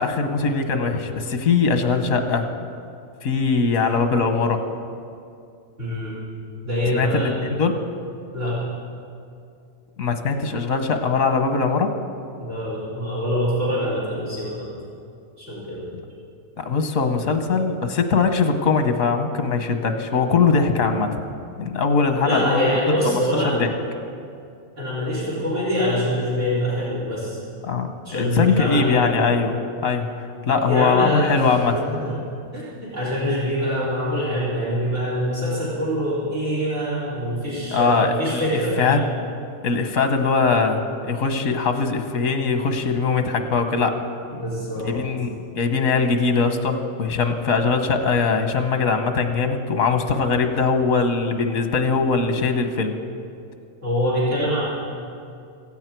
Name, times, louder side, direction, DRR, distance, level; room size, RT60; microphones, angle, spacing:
voice 1, 0.0-2.5 3.2-4.6 6.9-7.8 10.0-11.9 16.6-21.2 21.6-23.7 27.6-29.6 29.8-30.1 30.5-31.8 37.7-38.4 38.8-39.0 39.6-44.0 44.8-52.9, left 4 dB, 90° left, 7 dB, 1.5 m, -21 dB
voice 2, 5.8-6.1 6.6-7.3 8.3-8.6 12.4-14.7 15.4-15.8 22.2-23.5 24.8-27.4 28.0-29.1 30.7-32.1 32.5-39.0 44.3-45.0 53.8-54.6, equal, 65° right, -8 dB, 4.6 m, -24 dB
16.0 x 16.0 x 4.6 m, 2.4 s
omnidirectional pair, 1.4 m